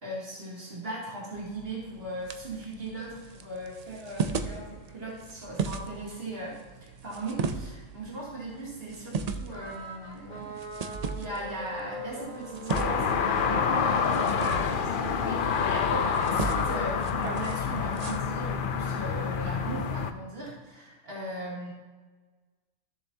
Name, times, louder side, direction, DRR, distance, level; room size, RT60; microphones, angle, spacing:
voice 1, 0.0-10.6 11.1-21.7, right 2 dB, 45° right, -7 dB, 2.9 m, -38 dB
sound 1, 1.3-18.2, right 5 dB, 75° right, 0.3 m, -38 dB
sound 2, 9.5-15.0, equal, 35° left, 1.8 m, -41 dB
sound 3, 12.7-20.1, left 6 dB, 60° left, 0.5 m, -27 dB
15.0 x 7.0 x 2.8 m, 1.3 s
omnidirectional pair, 1.4 m